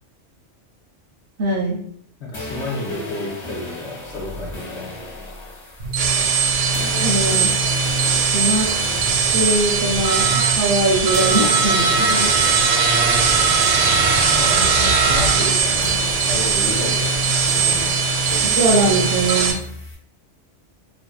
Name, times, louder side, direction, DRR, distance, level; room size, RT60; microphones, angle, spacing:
voice 1, 1.4-1.8 7.0-7.5 8.1-8.7 9.3-12.3 18.4-19.6, right 1 dB, 60° right, -3 dB, 0.7 m, -21 dB
voice 2, 2.2-4.9 11.4-11.6 11.9-12.2 12.8-13.5 14.2-15.9 16.2-18.0, left 2 dB, 70° left, -3 dB, 1.0 m, -31 dB
sound 1, 2.3-10.8 11.1-19.9, left 1 dB, 25° left, 1.1 m, -35 dB
sound 2, 5.8-19.5, right 5 dB, 85° right, 0.9 m, -19 dB
2.5 x 2.4 x 2.3 m, 0.62 s
omnidirectional pair, 1.2 m